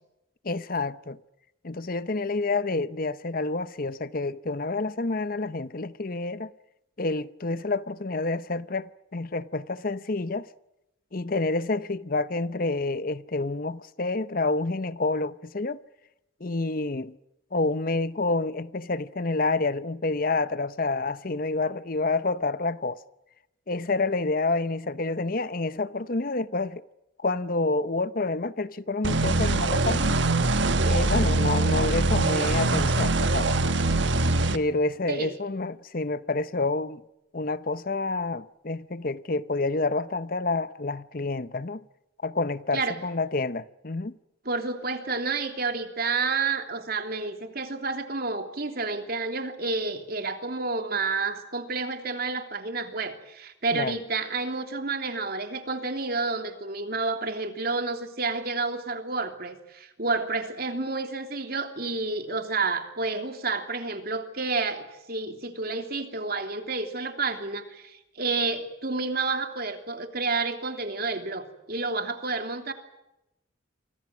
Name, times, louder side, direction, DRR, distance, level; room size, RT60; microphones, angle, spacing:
voice 1, 0.4-1.2 1.6-6.5 7.0-10.4 11.1-15.8 16.4-17.2 17.5-23.0 23.7-26.8 27.2-30.2 30.8-33.8 34.5-37.0 37.3-41.8 42.2-44.1 53.7-54.0, left 3 dB, 45° left, 0.8 m, -28 dB
sound 1, 29.0-34.6, right 2 dB, 65° right, 1.4 m, -23 dB
voice 2, 44.4-72.7, right 3 dB, 50° right, 3.1 m, -30 dB
29.5 x 25.0 x 6.2 m
head